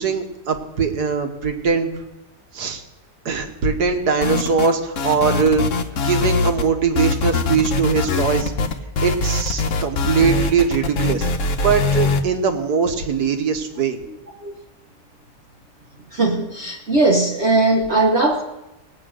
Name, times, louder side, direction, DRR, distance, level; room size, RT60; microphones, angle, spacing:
voice 1, 0.0-2.0 2.5-2.8 3.2-5.7 6.0-8.5 9.0-11.3 11.6-14.0, right 5 dB, 65° right, 6 dB, 1.7 m, -21 dB
sound 1, 4.2-4.7 5.0-6.7 7.0-12.2, left 3 dB, 55° left, 1.1 m, -22 dB
voice 2, 16.1-18.4, right 2 dB, 45° right, 0 dB, 1.1 m, -18 dB
18.0 x 8.5 x 6.3 m, 0.97 s
omnidirectional pair, 1.9 m